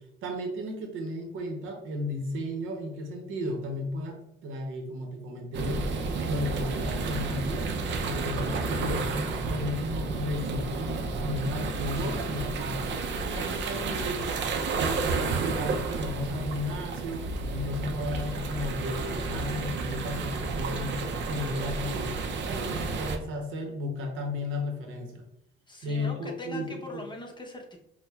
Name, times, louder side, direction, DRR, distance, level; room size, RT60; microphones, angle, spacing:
voice 1, 0.2-4.2 4.4-7.7 8.0-13.0 13.3-14.3 14.7-25.2 25.8-27.0, left 1 dB, 90° right, 3 dB, 0.8 m, -34 dB
sound 1, 5.5-23.2, right 4 dB, 65° right, 0.5 m, -31 dB
voice 2, 13.4-13.9 25.7-27.8, left 2 dB, 25° left, 1 dB, 0.7 m, -41 dB
5.6 x 2.1 x 2.3 m, 0.80 s
cardioid pair, 90°, 20 cm